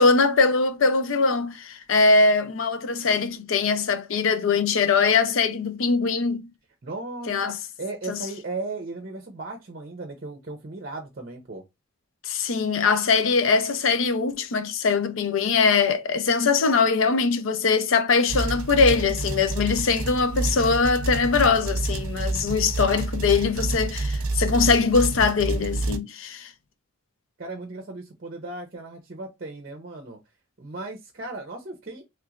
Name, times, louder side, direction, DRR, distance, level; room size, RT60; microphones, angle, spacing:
voice 1, 0.0-6.5 7.3-7.6 8.1-8.2 12.2-26.5, left 4 dB, 70° left, 0.5 m, -22 dB
voice 2, 6.8-11.6 27.4-30.2 30.6-32.0, right 2 dB, 45° right, 0.6 m, -36 dB
sound 1, 18.3-26.0, right 2 dB, 90° right, 0.5 m, -28 dB
3.2 x 2.9 x 2.4 m
head